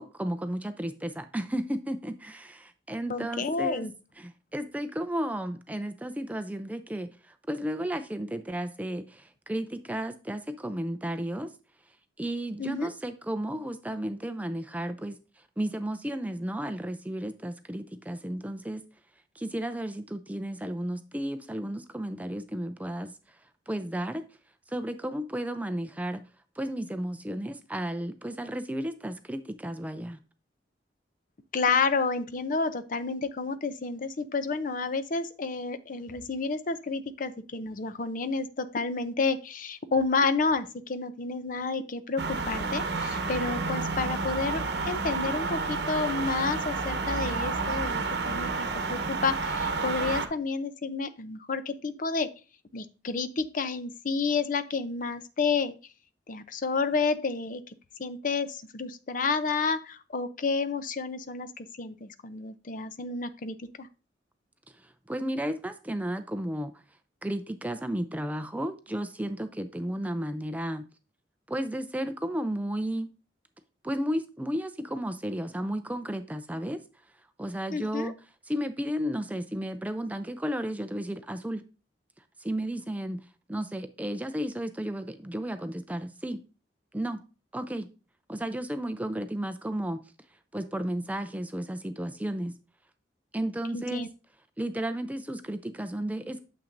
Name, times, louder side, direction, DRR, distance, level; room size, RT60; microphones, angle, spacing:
voice 1, 0.0-3.9 4.2-11.5 12.2-15.2 15.6-18.8 19.4-23.4 23.7-24.2 24.7-26.2 26.6-30.2 64.7-66.7 67.2-70.8 71.5-73.1 73.8-76.8 77.4-78.1 78.5-81.6 82.4-86.4 86.9-87.2 87.5-87.9 88.3-90.0 90.5-92.6 93.3-94.1 94.6-96.4, right 1 dB, 10° right, 10 dB, 0.4 m, -33 dB
voice 2, 3.1-3.9 12.6-12.9 31.5-52.3 52.7-55.8 56.3-63.9 77.7-78.1 93.7-94.1, left 4 dB, 50° left, 11 dB, 0.6 m, -30 dB
sound 1, 42.2-50.3, right 4 dB, 65° right, 1.0 m, -30 dB
8.7 x 7.1 x 2.6 m, 0.34 s
head